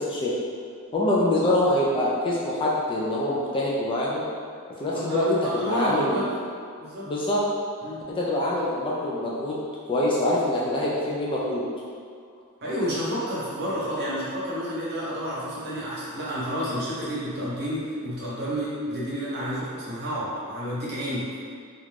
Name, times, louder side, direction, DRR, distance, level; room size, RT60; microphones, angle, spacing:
voice 1, 0.9-4.2 4.8-6.2 7.1-7.4 8.1-9.6 9.9-11.6, left 1 dB, 20° left, -5 dB, 0.3 m, -25 dB
voice 2, 4.9-6.3 6.8-7.1 7.8-8.0 12.6-21.3, equal, 45° right, -8 dB, 0.8 m, -30 dB
2.4 x 2.1 x 3.2 m, 2.3 s
head